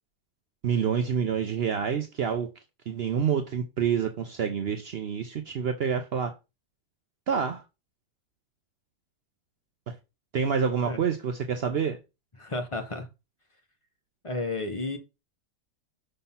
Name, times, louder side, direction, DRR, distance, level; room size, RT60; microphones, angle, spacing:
voice 1, 0.6-2.5 2.9-6.3 7.3-7.6 9.9-10.0 10.3-12.0, right 7 dB, 80° right, 0.5 m, -27 dB
voice 2, 12.4-13.1 14.2-15.0, left 2 dB, 45° left, 0.4 m, -32 dB
5.6 x 3.3 x 5.6 m
omnidirectional pair, 1.8 m